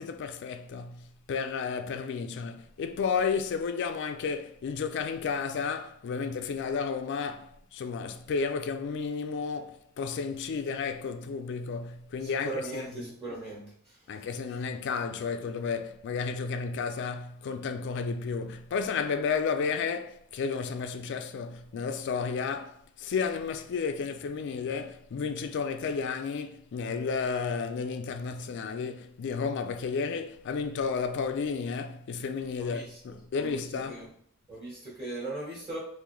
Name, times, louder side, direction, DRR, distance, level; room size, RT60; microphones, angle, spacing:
voice 1, 0.0-13.1 14.1-34.1, left 5 dB, 55° left, 0.3 m, -32 dB
voice 2, 12.2-14.2 32.6-33.0 33.3-34.1 34.5-35.8, right 2 dB, 20° right, 1.1 m, -39 dB
3.7 x 2.5 x 3.1 m
head